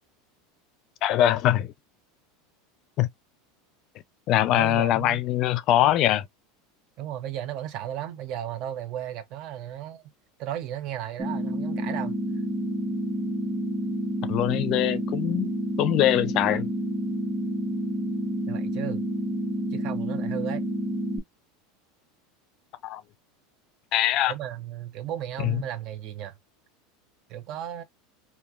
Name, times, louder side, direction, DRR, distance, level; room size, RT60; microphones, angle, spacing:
voice 1, 1.0-1.7 3.0-3.1 4.3-6.2 14.3-15.5 15.8-16.7 22.8-23.0 23.9-24.3 25.4-25.6, left 13 dB, 45° left, 0.3 m, -22 dB
voice 2, 4.5-5.2 7.0-10.0 10.4-12.2 18.5-19.1 19.7-20.6 24.3-26.3 27.3-27.8, right 11 dB, 50° right, 0.7 m, -35 dB
sound 1, 11.2-21.2, right 1 dB, 5° right, 0.6 m, -29 dB
3.0 x 2.3 x 2.3 m
supercardioid pair, 130°, 0 cm